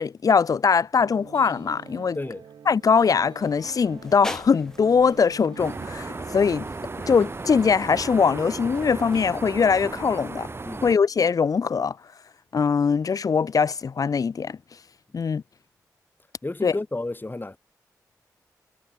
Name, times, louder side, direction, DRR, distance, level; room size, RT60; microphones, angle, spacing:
voice 1, 0.0-2.2 2.7-6.7 7.1-10.5 10.8-12.0 12.5-14.6 15.1-15.4 16.6-16.8, left 6 dB, 55° left, 0.5 m, -22 dB
sound 1, 1.0-11.6, right 8 dB, 80° right, 5.5 m, -48 dB
sound 2, 3.4-9.3, left 1 dB, 5° left, 5.0 m, -44 dB
sound 3, 5.6-10.9, right 3 dB, 35° right, 1.0 m, -35 dB
voice 2, 16.4-17.6, left 2 dB, 30° left, 3.2 m, -31 dB
supercardioid pair, 45°, 7 cm